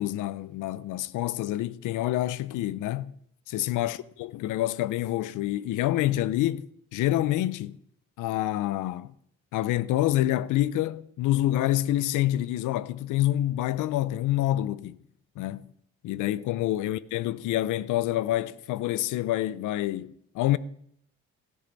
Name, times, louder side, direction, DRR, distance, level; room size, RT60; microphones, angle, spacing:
voice 1, 0.0-3.2 3.5-7.8 8.2-9.1 9.5-15.0 15.4-15.7 16.0-20.6, left 14 dB, 85° left, 0.6 m, -27 dB
16.0 x 10.5 x 4.0 m
cardioid pair, 90°, 30 cm